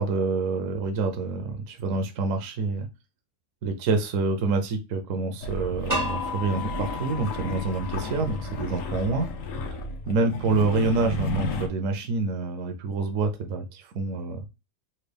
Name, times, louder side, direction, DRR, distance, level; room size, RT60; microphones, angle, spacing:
voice 1, 0.0-2.9 3.6-9.3 9.7-9.8 10.1-14.4, right 3 dB, 65° right, 1.0 m, -27 dB
sound 1, 5.4-11.7, left 2 dB, 65° left, 1.0 m, -33 dB
sound 2, 5.9-8.8, left 1 dB, 25° right, 0.4 m, -34 dB
4.3 x 2.3 x 3.3 m
omnidirectional pair, 1.6 m